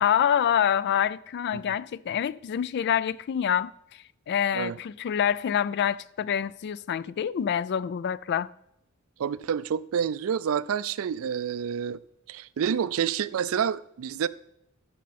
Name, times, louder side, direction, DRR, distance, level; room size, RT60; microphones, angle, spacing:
voice 1, 0.0-3.7 4.3-8.5, left 9 dB, 55° left, 0.3 m, -26 dB
voice 2, 9.2-12.0 12.3-14.3, right 7 dB, 70° right, 0.4 m, -28 dB
14.5 x 5.7 x 4.2 m
head